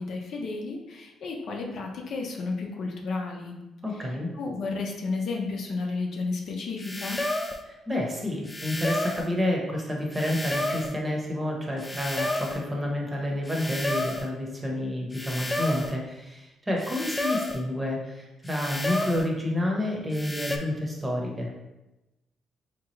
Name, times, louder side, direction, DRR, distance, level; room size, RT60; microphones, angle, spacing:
voice 1, 0.0-3.5 3.9-4.1 4.4-7.2, left 3 dB, 65° left, 0 dB, 0.6 m, -32 dB
voice 2, 3.8-4.3 7.7-21.5, left 1 dB, 15° right, -1 dB, 0.9 m, -29 dB
sound 1, 6.8-7.6 8.5-9.3 10.1-11.0 11.8-12.6 13.5-14.3 15.1-16.0 16.8-17.6 18.5-19.3 20.1-20.6, left 1 dB, 15° left, 0.4 m, -31 dB
3.5 x 2.9 x 3.1 m, 0.99 s
cardioid pair, 90°, 0 cm